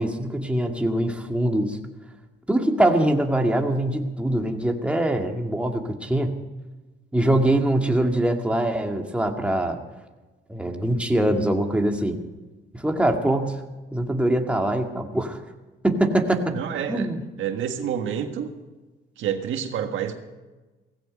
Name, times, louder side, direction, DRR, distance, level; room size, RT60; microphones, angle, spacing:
voice 1, 0.0-1.8 2.5-6.4 7.1-9.8 10.5-12.2 12.7-13.6 13.9-15.4 15.8-16.6 16.9-17.2, right 1 dB, 5° right, 2 dB, 2.1 m, -23 dB
voice 2, 16.5-17.1 17.4-18.5 19.2-20.1, right 8 dB, 80° right, 6 dB, 1.6 m, -28 dB
17.0 x 16.0 x 5.3 m, 1.2 s
cardioid pair, 90°, 20 cm